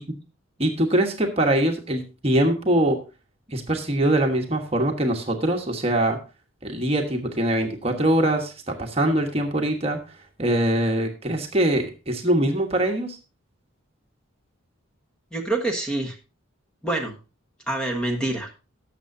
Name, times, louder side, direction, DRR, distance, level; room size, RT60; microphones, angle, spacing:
voice 1, 0.6-3.0 3.5-6.2 6.6-10.0 10.4-13.2, right 1 dB, 30° right, 3 dB, 1.3 m, -23 dB
voice 2, 15.3-16.2 16.8-17.1 17.7-18.5, right 2 dB, 5° left, 2 dB, 1.4 m, -26 dB
18.0 x 6.9 x 2.7 m, 0.32 s
head